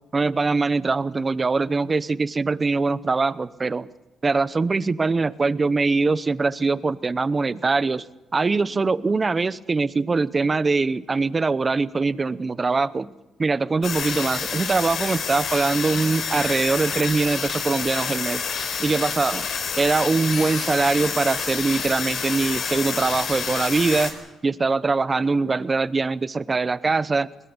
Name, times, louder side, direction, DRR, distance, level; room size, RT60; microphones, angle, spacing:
voice 1, 0.1-3.9 4.2-8.0 8.3-13.1 13.4-18.4 18.8-19.5 19.8-24.1 24.4-27.3, right 4 dB, 30° right, 17 dB, 0.8 m, -22 dB
sound 1, 13.8-24.1, left 6 dB, 60° left, 4.5 m, -28 dB
22.0 x 21.0 x 7.1 m, 1.1 s
cardioid pair, 90°, 0 cm